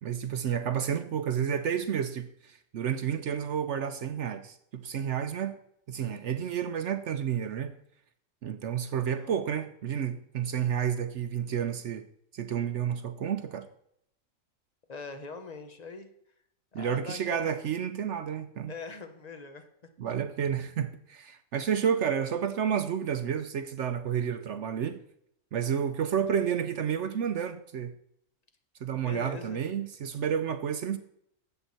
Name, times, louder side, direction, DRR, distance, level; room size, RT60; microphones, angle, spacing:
voice 1, 0.0-5.6 5.9-7.7 8.4-12.1 12.3-13.7 16.7-18.7 20.0-25.0 25.5-27.9 28.8-31.0, right 8 dB, 65° right, 0.8 m, -30 dB
voice 2, 14.9-16.1 16.7-17.5 18.7-19.7 29.0-29.6, left 4 dB, 35° left, 0.9 m, -42 dB
12.5 x 8.0 x 4.2 m
omnidirectional pair, 1.5 m